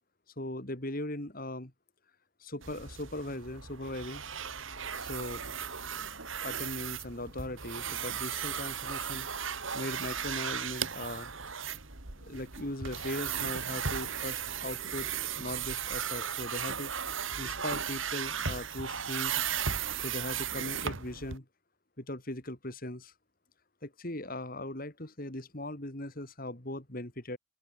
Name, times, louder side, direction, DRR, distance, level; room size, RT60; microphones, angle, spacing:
voice 1, 0.4-1.7 2.4-4.2 5.0-5.4 6.3-9.3 9.7-11.3 12.2-15.1 15.4-16.9 17.4-19.4 20.0-21.4 22.0-23.1 23.8-27.4, left 1 dB, 45° left, 3.0 m, -39 dB
sound 1, 2.6-21.4, right 7 dB, 70° right, 2.6 m, -36 dB
open air
head